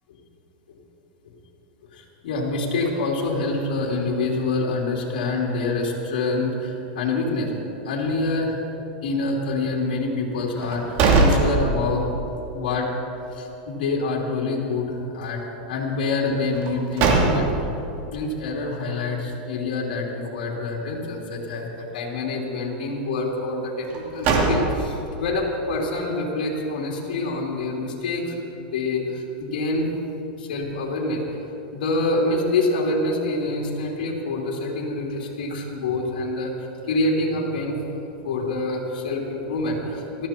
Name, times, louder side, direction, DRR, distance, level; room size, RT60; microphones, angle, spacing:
voice 1, 1.9-7.5 7.8-8.6 9.0-12.1 12.5-12.9 13.3-17.7 18.1-29.9 30.3-31.2 31.7-37.8 38.2-40.3, left 2 dB, 75° left, -2 dB, 3.1 m, -26 dB
sound 1, 10.6-12.2 12.6-12.7 16.5-17.8 23.8-25.1, right 3 dB, 45° right, 2.7 m, -21 dB
19.0 x 14.0 x 4.4 m, 2.9 s
supercardioid pair, 135°, 5 cm